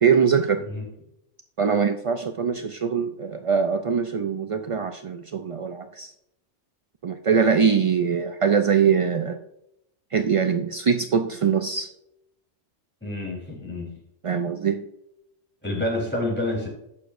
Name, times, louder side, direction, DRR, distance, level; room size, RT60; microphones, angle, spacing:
voice 1, 0.0-0.6 1.6-6.1 7.0-9.4 10.1-11.9 14.2-14.8, right 6 dB, 60° right, 6 dB, 0.3 m, -22 dB
voice 2, 13.0-13.9 15.6-16.7, left 1 dB, 10° left, -2 dB, 3.7 m, -28 dB
16.0 x 6.8 x 2.6 m, 0.80 s
omnidirectional pair, 1.3 m